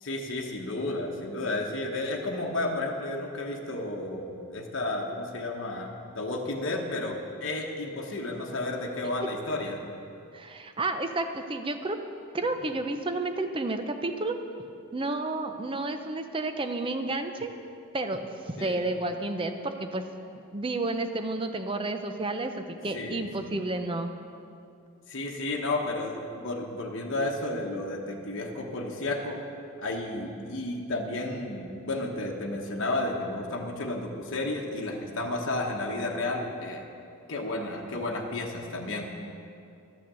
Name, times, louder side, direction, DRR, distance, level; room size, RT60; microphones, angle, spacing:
voice 1, 0.0-5.9 6.1-9.8 18.6-18.8 22.9-23.6 25.1-29.4 29.8-36.8 37.3-39.0, left 2 dB, 55° left, 0 dB, 1.1 m, -32 dB
voice 2, 10.3-12.0 12.3-14.4 14.9-17.5 17.9-20.0 20.5-24.1, right 2 dB, 25° right, 7 dB, 0.6 m, -31 dB
12.5 x 6.6 x 6.8 m, 2.6 s
head